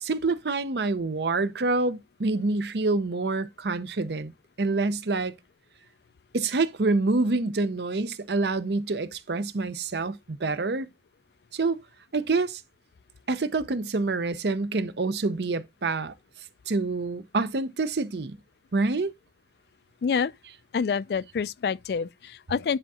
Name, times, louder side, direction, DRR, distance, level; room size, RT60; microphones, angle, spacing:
voice 1, 0.0-4.3 4.6-5.3 6.3-10.9 11.5-11.8 12.1-12.6 13.3-16.1 16.7-18.4 18.7-19.1, right 3 dB, 70° right, 0.7 m, -27 dB
voice 2, 20.0-20.3 20.7-22.8, left 6 dB, 60° left, 0.3 m, -27 dB
10.0 x 3.6 x 4.2 m
head